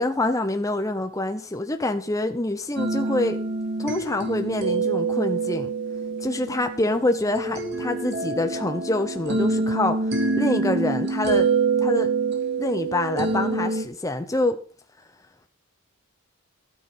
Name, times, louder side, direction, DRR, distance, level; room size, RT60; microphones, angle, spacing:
voice 1, 0.0-3.4 3.8-5.7 6.2-11.5 11.8-12.1 12.6-14.6, left 2 dB, 15° left, 8 dB, 0.8 m, -26 dB
sound 1, 2.8-13.8, right 4 dB, 50° right, 2.7 m, -26 dB
13.0 x 9.6 x 5.4 m, 0.41 s
head